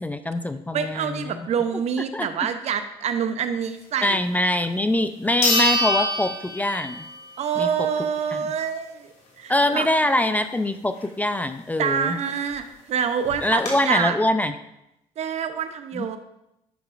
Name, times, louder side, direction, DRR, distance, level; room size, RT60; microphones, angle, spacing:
voice 1, 0.0-1.5 2.1-2.3 4.0-7.1 7.6-7.9 8.3-8.5 9.5-12.2 13.4-14.5 15.9-16.1, left 1 dB, 10° left, 10 dB, 0.4 m, -24 dB
voice 2, 0.7-4.2 7.4-9.9 11.8-14.2 15.2-16.2, right 7 dB, 55° right, 9 dB, 0.7 m, -26 dB
sound 1, 4.6-4.7 5.4-7.2 7.6-7.7 12.3-12.4 12.6-12.7 13.2-13.7, left 1 dB, 60° left, 2.8 m, -24 dB
10.0 x 6.0 x 2.5 m, 0.85 s
cardioid pair, 90°, 13 cm